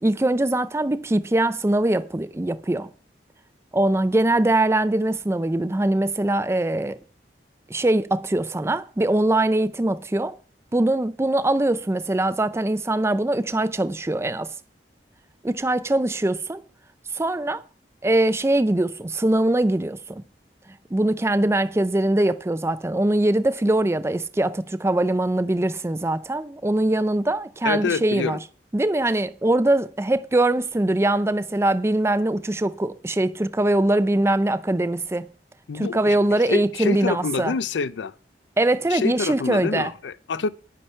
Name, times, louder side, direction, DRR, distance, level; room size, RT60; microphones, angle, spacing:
voice 1, 0.0-2.9 3.7-7.0 7.7-10.4 10.7-14.5 15.4-16.6 17.1-17.6 18.0-20.2 20.9-28.4 28.7-35.3 35.7-37.5 38.6-39.9, right 1 dB, 15° right, 0.4 m, -22 dB
voice 2, 27.6-28.4 35.7-36.2 36.5-38.1 38.9-40.5, left 4 dB, 80° left, 0.5 m, -27 dB
9.9 x 9.8 x 4.4 m
head